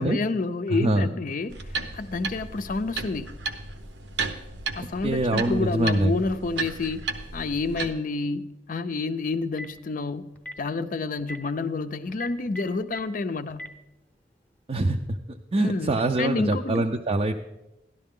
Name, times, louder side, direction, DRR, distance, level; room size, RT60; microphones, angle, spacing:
voice 1, 0.0-3.3 4.7-7.1 7.3-10.3 10.6-13.7 15.6-16.8, left 3 dB, 50° left, 11 dB, 0.5 m, -29 dB
sound 1, 1.5-7.9, right 4 dB, 90° right, 0.9 m, -34 dB
voice 2, 5.0-6.2 14.7-17.3, right 2 dB, 35° right, 3 dB, 0.4 m, -24 dB
Telephone, 9.3-9.8 10.4-10.6 11.2-11.4 12.1-13.0 13.5-13.7, equal, 10° left, 0.7 m, -37 dB
12.5 x 11.5 x 3.7 m, 0.97 s
head